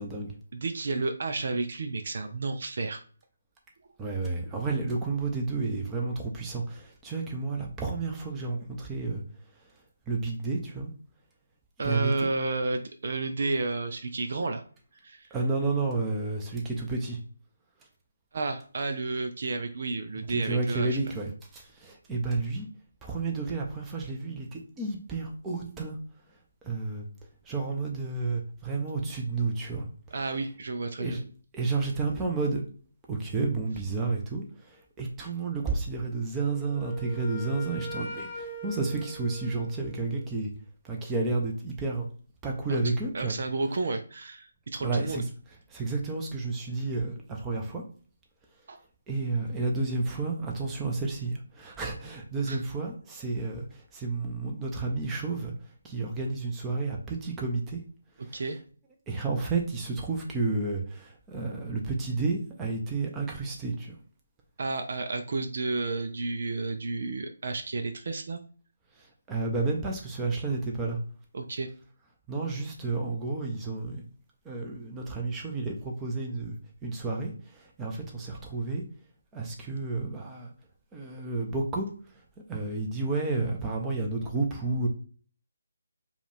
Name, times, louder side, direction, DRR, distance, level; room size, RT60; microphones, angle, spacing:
voice 1, 0.0-0.3 4.0-9.2 10.1-10.9 11.8-12.3 15.3-17.2 20.3-22.7 23.0-26.0 26.6-27.0 27.5-29.9 31.0-31.2 31.5-32.6 33.1-40.5 40.8-42.0 42.4-43.4 44.8-45.3 45.7-47.8 49.1-55.5 55.8-57.8 58.2-58.4 59.1-64.0 69.0-71.0 72.3-74.0 74.4-78.8 79.3-80.5 80.9-81.9 82.5-84.9, right 3 dB, 10° right, 0 dB, 0.8 m, -31 dB
voice 2, 0.5-3.0 11.8-14.6 15.0-15.3 18.3-21.0 30.1-31.2 43.1-45.2 48.7-48.8 52.5-52.6 58.2-58.6 64.6-68.4 71.3-71.7, right 3 dB, 60° right, 7 dB, 0.6 m, -31 dB
Wind instrument woodwind instrument, 36.4-40.3, right 2 dB, 30° left, 0.8 m, -41 dB
4.8 x 2.5 x 3.4 m, 0.42 s
figure-of-eight pair, 155°, 0 cm